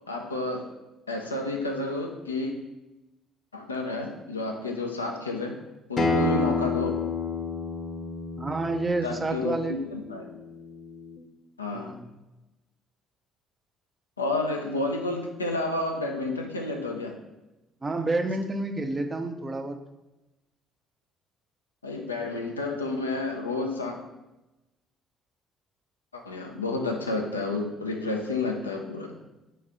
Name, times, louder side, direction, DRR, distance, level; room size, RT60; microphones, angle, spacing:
voice 1, 0.1-0.7 1.1-2.5 3.5-5.6 5.9-7.0 9.0-10.3 11.6-11.9 14.2-17.2 21.8-24.0 26.1-29.2, left 2 dB, 85° left, 2 dB, 0.4 m, -30 dB
Acoustic guitar, 6.0-11.2, left 3 dB, 35° left, 0.7 m, -30 dB
voice 2, 8.4-9.8 11.7-12.1 17.8-19.8, right 2 dB, 25° right, 7 dB, 0.5 m, -29 dB
3.9 x 2.9 x 4.7 m, 0.99 s
figure-of-eight pair, 50°, 0 cm